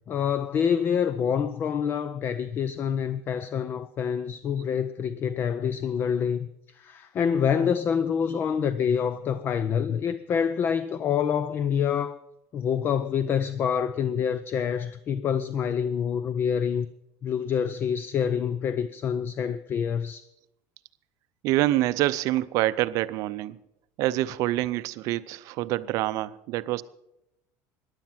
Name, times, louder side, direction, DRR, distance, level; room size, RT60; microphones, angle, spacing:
voice 1, 0.1-6.5 6.8-12.2 12.5-16.9 17.2-20.2, left 7 dB, 30° left, 0.4 m, -26 dB
voice 2, 21.4-23.6 24.0-26.8, right 16 dB, 55° right, 0.5 m, -26 dB
15.0 x 10.5 x 5.8 m
cardioid pair, 150°, 7 cm